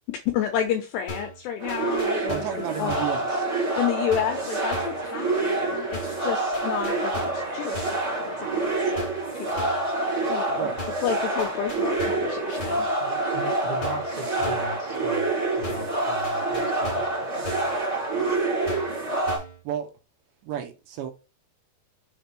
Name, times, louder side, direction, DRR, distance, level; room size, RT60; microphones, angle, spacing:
voice 1, 0.3-2.5 2.8-2.9 3.8-8.9 9.3-9.7 10.3-10.7 11.0-12.9, left 9 dB, 75° left, 2.6 m, -30 dB
sound 1, 1.1-1.4 1.7-2.6 2.9-3.2 4.1-4.4 4.7-5.0 5.9-6.2 6.5-7.5 7.7-8.1 9.0-9.3 9.6-9.9 10.8-11.1 11.4-12.3 12.6-12.9 13.8-14.1 14.4-14.7 15.6-16.0 16.2-17.2 17.4-17.8 18.7-19.0 19.3-19.6, left 1 dB, 50° left, 1.2 m, -37 dB
sound 2, 1.6-19.4, right 2 dB, 40° right, 1.0 m, -27 dB
voice 2, 2.3-3.5 10.6-10.8 19.6-19.9 20.4-21.1, right 10 dB, 75° right, 2.9 m, -32 dB
voice 3, 13.0-15.3 15.5-17.5, equal, 55° right, 0.5 m, -37 dB
6.7 x 3.5 x 4.5 m
omnidirectional pair, 5.4 m